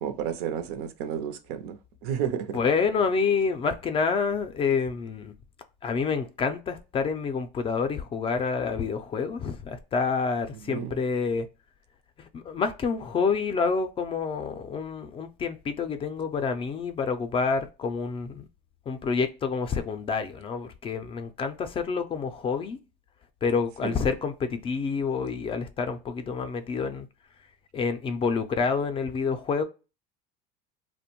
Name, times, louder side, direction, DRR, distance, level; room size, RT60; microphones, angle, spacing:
voice 1, 0.0-2.6 10.7-11.0 23.8-24.0, right 8 dB, 75° right, 0.5 m, -32 dB
voice 2, 2.5-5.3 5.8-11.5 12.3-18.5 18.9-22.8 23.4-27.1 27.7-29.6, left 5 dB, 25° left, 0.4 m, -28 dB
2.5 x 2.1 x 2.8 m
supercardioid pair, 115°, 20 cm